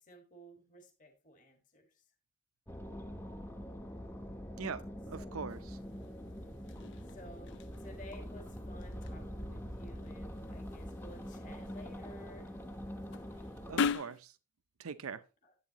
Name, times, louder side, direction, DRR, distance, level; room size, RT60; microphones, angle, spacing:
voice 1, 0.0-2.0 5.2-5.3 7.1-12.6 15.4-15.5, equal, 40° left, 1.7 m, -55 dB
sound 1, 2.7-13.9, equal, 10° left, 0.8 m, -44 dB
voice 2, 4.5-5.8 13.7-14.4 14.8-15.2, right 6 dB, 90° right, 0.6 m, -42 dB
sound 2, 5.5-14.2, left 6 dB, 55° left, 0.4 m, -42 dB
11.5 x 8.1 x 2.9 m
head